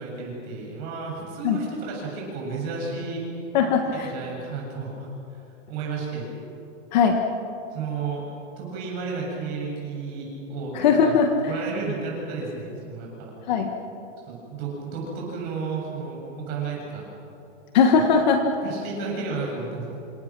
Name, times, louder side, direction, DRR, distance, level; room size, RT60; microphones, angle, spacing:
voice 1, 0.0-3.2 4.0-5.4 5.7-6.3 7.7-8.2 8.6-11.1 11.5-13.3 14.3-17.1 17.9-18.0 18.6-20.0, right 4 dB, 25° right, -2 dB, 7.4 m, -32 dB
voice 2, 3.5-4.1 6.9-7.2 10.7-11.3 13.5-13.7 17.7-18.4, left 6 dB, 35° left, 5 dB, 1.5 m, -19 dB
28.0 x 26.0 x 6.2 m, 2.9 s
supercardioid pair, 175°, 37 cm